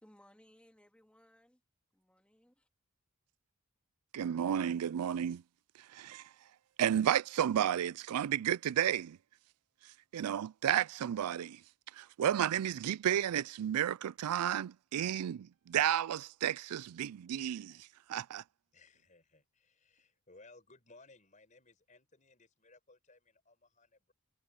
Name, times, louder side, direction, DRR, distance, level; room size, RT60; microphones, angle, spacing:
voice 1, 0.0-1.6 1.9-2.5, equal, 5° left, 3.4 m, -63 dB
voice 2, 4.1-5.4 5.9-6.2 6.8-9.2 10.1-11.6 11.9-18.4, right 10 dB, 85° right, 0.4 m, -32 dB
voice 3, 18.7-24.1, left 3 dB, 35° left, 6.0 m, -61 dB
head